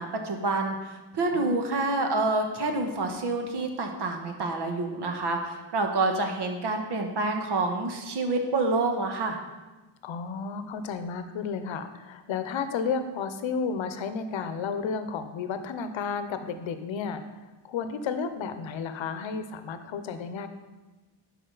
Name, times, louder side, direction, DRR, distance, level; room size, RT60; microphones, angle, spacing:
voice 1, 0.0-9.4, right 2 dB, 60° right, 4 dB, 1.2 m, -28 dB
voice 2, 1.3-1.7 10.0-20.5, left 5 dB, 85° left, 10 dB, 0.8 m, -32 dB
11.0 x 4.9 x 3.9 m, 1.2 s
wide cardioid pair, 115°, 45 cm